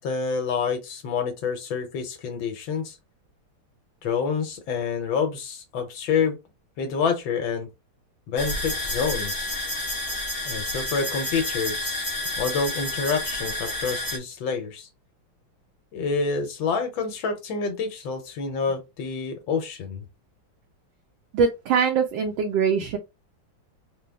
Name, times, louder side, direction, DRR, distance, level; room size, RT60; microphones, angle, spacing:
voice 1, 0.0-3.0 4.0-6.4 6.8-7.7 8.3-9.5 10.5-14.9 15.9-20.1, left 5 dB, 75° left, 1.5 m, -28 dB
sound 1, 8.4-14.2, left 1 dB, 15° left, 0.7 m, -30 dB
voice 2, 21.3-23.0, right 6 dB, 75° right, 1.3 m, -22 dB
3.9 x 2.3 x 3.4 m
omnidirectional pair, 2.2 m